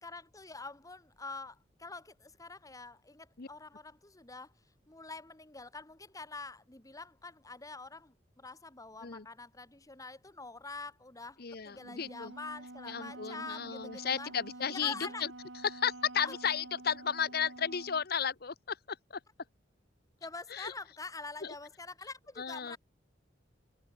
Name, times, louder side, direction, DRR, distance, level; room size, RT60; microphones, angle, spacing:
voice 1, 0.0-4.5 4.9-14.3 14.7-15.2 16.2-16.4 20.2-22.8, left 3 dB, 20° left, 1.9 m, -46 dB
voice 2, 11.4-12.3 12.9-14.9 15.2-15.3 15.6-19.2 20.5-20.7 21.4-21.5 22.4-22.8, left 7 dB, 60° left, 1.0 m, -34 dB
Wind instrument woodwind instrument, 11.8-18.1, right 2 dB, 85° right, 2.5 m, -48 dB
head